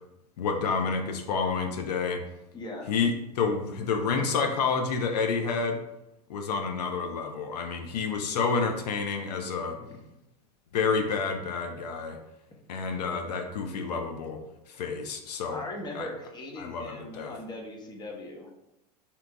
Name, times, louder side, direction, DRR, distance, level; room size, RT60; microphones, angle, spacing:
voice 1, 0.4-2.2 2.9-5.8 6.3-9.8 10.7-12.2 12.7-14.4 14.7-15.6 15.9-16.1 16.6-17.4, left 5 dB, 85° left, 4 dB, 0.4 m, -29 dB
voice 2, 2.5-2.9 9.8-10.0 15.5-18.5, left 1 dB, 20° left, 1 dB, 0.7 m, -39 dB
2.8 x 2.5 x 3.3 m, 0.88 s
hypercardioid pair, 100°, 20 cm